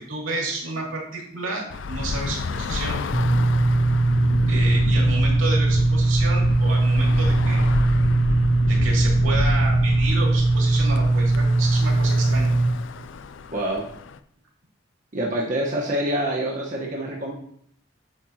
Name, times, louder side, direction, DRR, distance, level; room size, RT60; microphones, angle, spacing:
voice 1, 0.0-3.0 4.5-7.8 8.7-12.5, right 2 dB, 85° right, -2 dB, 2.5 m, -31 dB
Bus / Traffic noise roadway noise, 1.7-14.2, left 3 dB, 70° left, 0.4 m, -29 dB
sound 1, 3.1-12.7, right 2 dB, 20° left, 1.5 m, -20 dB
voice 2, 13.5-13.9 15.1-17.3, right 1 dB, 40° right, -3 dB, 1.2 m, -26 dB
8.5 x 7.1 x 2.9 m, 0.67 s
head